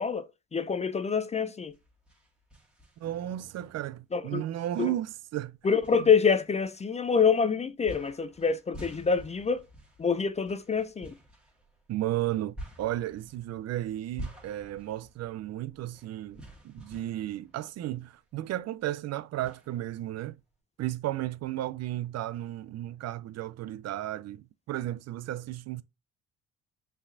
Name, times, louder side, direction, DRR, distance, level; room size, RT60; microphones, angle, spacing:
voice 1, 0.0-1.7 4.1-4.4 4.8-4.9 5.6-9.6 10.0-11.1, left 6 dB, 20° left, 0.4 m, -26 dB
sound 1, 1.7-3.4 3.9-4.0 4.9-5.0 5.8-7.3 7.8-18.2 18.6-18.7 19.4-20.5, equal, 5° right, 1.9 m, -49 dB
voice 2, 3.0-5.6 11.9-20.4 20.8-25.8, right 14 dB, 55° right, 0.4 m, -34 dB
5.4 x 3.3 x 2.5 m
supercardioid pair, 80°, 31 cm